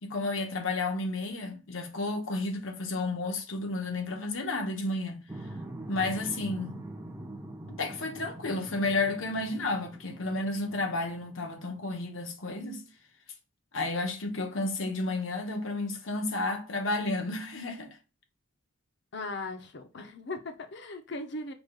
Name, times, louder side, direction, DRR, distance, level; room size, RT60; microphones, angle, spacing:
voice 1, 0.0-5.2 5.9-6.8 7.7-12.8 13.7-18.0, left 2 dB, 85° left, 0.9 m, -32 dB
sound 1, 5.3-11.8, right 1 dB, 10° right, 0.4 m, -43 dB
voice 2, 19.1-21.5, left 2 dB, 60° left, 0.7 m, -38 dB
4.9 x 2.4 x 3.7 m
head